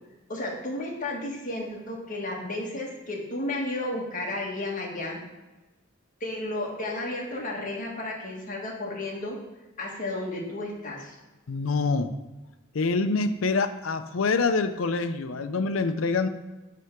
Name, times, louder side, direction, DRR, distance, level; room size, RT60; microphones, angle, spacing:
voice 1, 0.3-5.2 6.2-9.4 9.8-11.2, left 2 dB, 40° left, -2 dB, 1.6 m, -33 dB
voice 2, 11.5-12.1 12.7-16.3, left 4 dB, 80° left, 9 dB, 0.6 m, -26 dB
7.4 x 3.4 x 5.9 m, 1.1 s
head